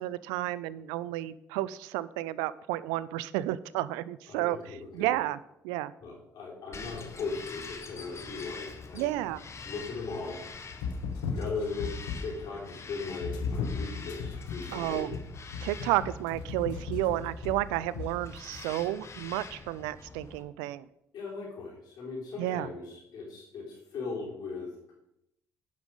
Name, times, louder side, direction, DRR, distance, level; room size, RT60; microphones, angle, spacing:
voice 1, 0.0-5.4 5.6-5.9 8.9-9.4 14.7-15.1 15.6-20.9 22.4-22.7, right 15 dB, 90° right, 18 dB, 0.4 m, -31 dB
voice 2, 4.3-5.2 6.0-9.1 9.6-10.4 11.3-11.9 12.2-15.1 21.1-24.9, left 4 dB, 70° left, -3 dB, 3.9 m, -38 dB
Bird vocalization bird call bird song, 6.7-20.4, left 4 dB, 40° left, 1.2 m, -46 dB
sound 1, 10.7-12.5 13.2-18.6, left 5 dB, 85° left, 1.0 m, -36 dB
10.5 x 5.4 x 4.9 m, 0.83 s
supercardioid pair, 65°, 7 cm